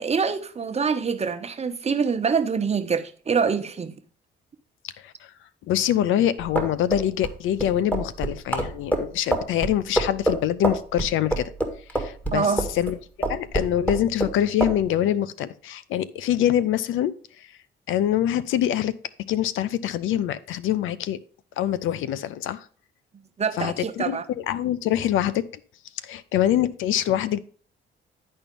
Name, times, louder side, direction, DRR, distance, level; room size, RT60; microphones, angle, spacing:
voice 1, 0.0-3.9 12.3-12.7 23.4-24.3, right 5 dB, 35° right, 1.0 m, -25 dB
voice 2, 5.7-11.5 11.9-12.5 12.7-13.0 13.3-17.5 17.9-19.0 19.3-21.2 21.6-22.7 23.6-25.4 26.0-27.4, left 11 dB, 85° left, 0.6 m, -24 dB
sound 1, 6.4-12.9 13.2-14.3 14.6-14.8, right 1 dB, 10° left, 1.7 m, -25 dB
10.5 x 4.4 x 5.2 m
cardioid pair, 90°, 20 cm